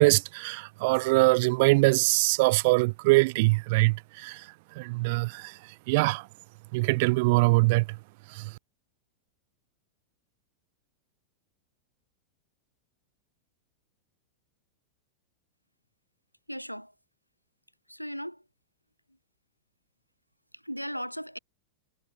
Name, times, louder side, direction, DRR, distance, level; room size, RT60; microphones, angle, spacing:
voice 1, 0.0-4.4 4.8-5.5 5.9-6.3 6.7-8.0 8.3-8.5, right 25 dB, 50° right, 0.7 m, -23 dB
voice 2, 16.5-16.9 17.9-18.4 20.5-21.4, equal, 90° left, 5.0 m, -37 dB
figure-of-eight pair, 90°, 0 cm